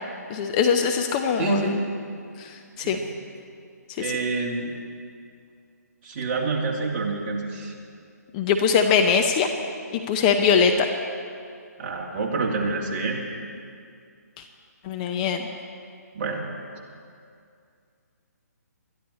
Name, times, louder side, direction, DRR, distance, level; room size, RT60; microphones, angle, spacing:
voice 1, 0.3-1.7 2.4-3.0 4.0-4.1 8.3-9.5 10.1-10.9 14.8-15.5, left 6 dB, 25° left, 5 dB, 0.8 m, -22 dB
voice 2, 1.4-1.8 2.8-3.1 4.0-4.7 6.0-7.7 11.8-13.3 16.1-16.4, right 4 dB, 35° right, -1 dB, 2.3 m, -27 dB
21.5 x 12.5 x 4.3 m, 2.3 s
figure-of-eight pair, 145°, 9 cm